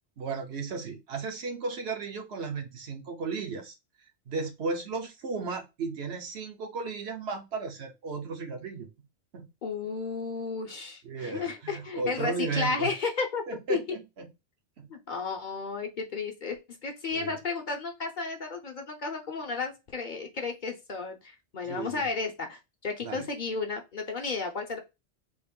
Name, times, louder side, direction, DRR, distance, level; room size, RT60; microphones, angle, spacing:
voice 1, 0.2-3.7 4.3-8.9 9.3-9.5 11.0-12.9 13.5-14.3 14.8-14.9 17.1-17.4 21.6-22.1 23.0-23.3, right 4 dB, 70° right, 4 dB, 1.0 m, -35 dB
voice 2, 9.6-13.4 13.7-13.8 14.9-24.8, left 4 dB, 50° left, 4 dB, 0.7 m, -33 dB
3.5 x 2.5 x 3.6 m, 0.24 s
omnidirectional pair, 1.1 m